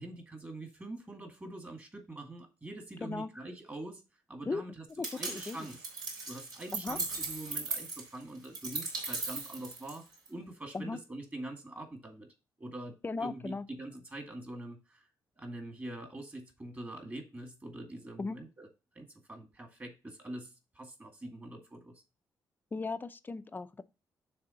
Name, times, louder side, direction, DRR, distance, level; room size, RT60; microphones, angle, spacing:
voice 1, 0.0-4.0 4.3-4.8 5.1-5.8 6.3-10.0 10.3-12.3 12.6-12.9 13.2-15.1 15.4-18.7 18.9-22.0, right 1 dB, 25° right, 2.1 m, -44 dB
voice 2, 5.0-5.7 6.7-7.0 10.7-11.0 13.0-13.6 18.2-18.4 22.7-23.8, left 3 dB, 25° left, 0.6 m, -37 dB
sound 1, 5.0-10.3, right 3 dB, 65° right, 3.8 m, -38 dB
6.9 x 3.6 x 5.6 m
cardioid pair, 105°, 8 cm